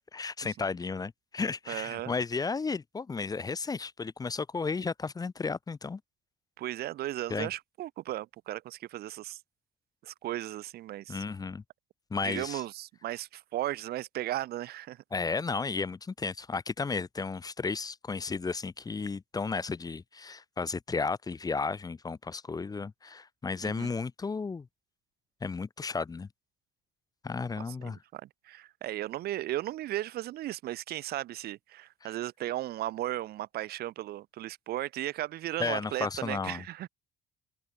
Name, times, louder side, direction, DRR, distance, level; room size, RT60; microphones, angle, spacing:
voice 1, 0.0-6.0 7.3-7.5 11.1-11.6 12.1-12.6 15.1-24.7 25.4-26.3 27.2-28.0 35.6-36.6, left 4 dB, 20° left, 0.9 m, -33 dB
voice 2, 1.7-2.1 6.6-9.4 10.0-11.2 12.2-15.0 23.6-23.9 27.6-36.9, right 14 dB, 65° right, 1.0 m, -36 dB
open air
cardioid pair, 110°, 17 cm